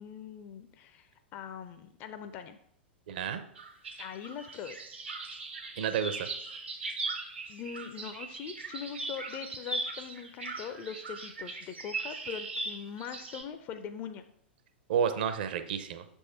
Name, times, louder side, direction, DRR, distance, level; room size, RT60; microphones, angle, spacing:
voice 1, 0.0-2.6 4.0-4.8 7.5-14.2, left 8 dB, 30° left, 8 dB, 0.4 m, -42 dB
voice 2, 3.1-3.4 5.8-6.3 14.9-16.0, right 7 dB, 55° right, 9 dB, 0.6 m, -30 dB
sound 1, 3.5-13.4, right 3 dB, 80° right, 1.2 m, -39 dB
6.3 x 3.6 x 4.3 m, 0.73 s
figure-of-eight pair, 95°, 6 cm